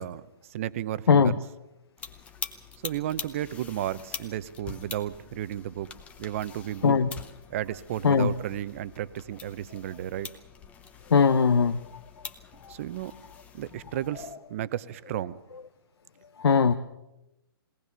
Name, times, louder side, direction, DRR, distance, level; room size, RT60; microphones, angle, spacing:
voice 1, 0.0-1.4 2.8-5.9 6.2-7.0 7.5-10.3 12.7-13.1 13.5-15.4, right 12 dB, 35° right, 15 dB, 0.7 m, -33 dB
sound 1, 2.0-14.3, left 6 dB, 10° left, 0.8 m, -44 dB
voice 2, 11.1-11.8 12.6-12.7 16.4-16.7, left 6 dB, 85° left, 8 dB, 1.0 m, -20 dB
21.0 x 18.5 x 6.9 m, 0.92 s
hypercardioid pair, 160°, 13 cm